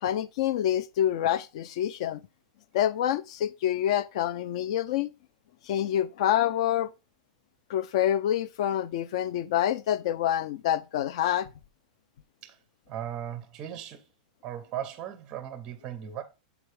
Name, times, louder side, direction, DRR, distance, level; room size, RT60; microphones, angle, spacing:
voice 1, 0.0-2.2 2.7-5.1 5.7-6.9 7.7-11.5, left 11 dB, 45° left, 0.4 m, -27 dB
voice 2, 12.9-14.1 14.4-16.2, right 10 dB, 20° right, 0.5 m, -37 dB
7.0 x 4.5 x 3.2 m
supercardioid pair, 175°, 4 cm